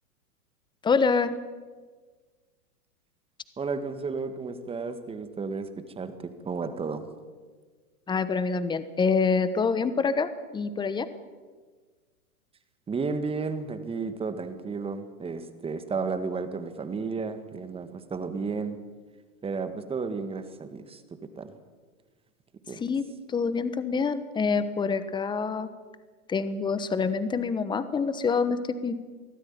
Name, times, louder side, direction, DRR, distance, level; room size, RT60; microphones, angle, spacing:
voice 1, 0.8-1.4 8.1-11.1 22.8-25.7 26.3-28.9, left 5 dB, 10° left, 13 dB, 1.1 m, -26 dB
voice 2, 3.6-5.7 6.0-7.1 12.9-18.8 19.4-21.0 21.4-21.5 22.7-22.8, right 4 dB, 10° right, 10 dB, 1.7 m, -33 dB
23.5 x 15.5 x 9.5 m, 1.4 s
hypercardioid pair, 130°, 45 cm